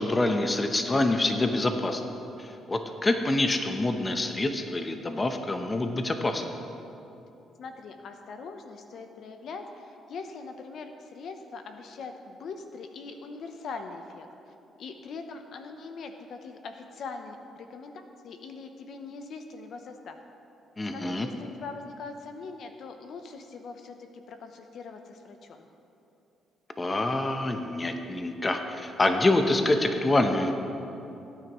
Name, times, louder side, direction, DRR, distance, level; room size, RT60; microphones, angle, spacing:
voice 1, 0.0-2.0 2.4-6.4 20.8-21.3 26.8-30.5, left 2 dB, 25° left, 6 dB, 0.9 m, -26 dB
voice 2, 7.6-14.3 14.8-20.2 20.9-25.7, left 4 dB, 65° left, 6 dB, 0.8 m, -42 dB
17.0 x 9.2 x 3.1 m, 2.8 s
cardioid pair, 90°, 0 cm